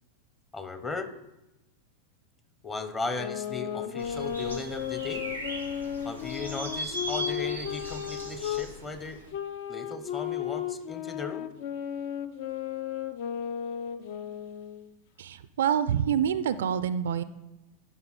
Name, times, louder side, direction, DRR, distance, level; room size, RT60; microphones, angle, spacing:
voice 1, 0.5-1.1 2.6-5.3 6.0-9.2 9.7-11.5, left 3 dB, 20° left, 10 dB, 0.8 m, -36 dB
sound 1, 3.1-8.7 9.3-14.9, left 10 dB, 50° left, 0.5 m, -34 dB
sound 2, 4.0-9.2, right 1 dB, 90° left, 1.5 m, -38 dB
voice 2, 15.2-17.2, right 9 dB, 60° right, 14 dB, 0.3 m, -26 dB
11.0 x 5.8 x 4.1 m, 0.94 s
figure-of-eight pair, 90°, 0 cm